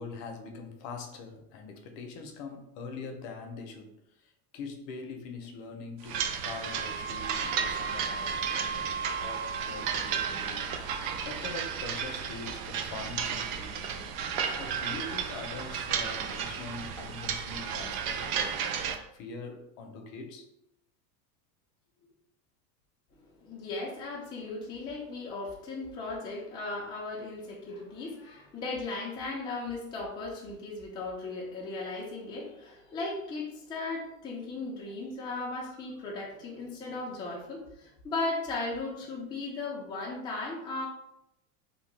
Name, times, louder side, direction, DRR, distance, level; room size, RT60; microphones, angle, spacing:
voice 1, 0.0-8.4 8.7-18.6 19.1-20.5 22.0-22.1, left 4 dB, 50° left, 4 dB, 0.7 m, -43 dB
sound 1, 6.0-19.0, right 7 dB, 55° right, 0.5 m, -33 dB
Wind instrument woodwind instrument, 6.6-10.5, right 5 dB, 20° right, 1.4 m, -37 dB
voice 2, 23.4-40.9, left 3 dB, 10° left, -4 dB, 0.4 m, -37 dB
2.8 x 2.2 x 3.2 m, 0.81 s
supercardioid pair, 120°, 48 cm